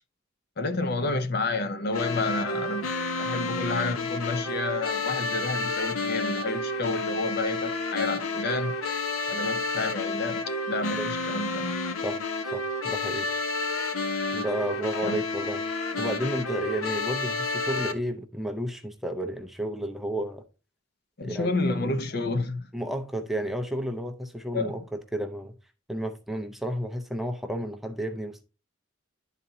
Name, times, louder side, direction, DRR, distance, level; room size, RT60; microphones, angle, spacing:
voice 1, 0.6-2.9 3.2-8.8 9.3-11.8 15.0-15.2 21.2-22.7 24.5-24.7, left 3 dB, 50° left, 0.6 m, -30 dB
sound 1, 1.9-17.9, left 3 dB, 90° left, 0.8 m, -30 dB
voice 2, 12.5-13.3 14.3-20.4 21.2-22.0 22.7-25.5 25.9-28.4, right 1 dB, ahead, 0.5 m, -32 dB
11.5 x 4.1 x 2.7 m
head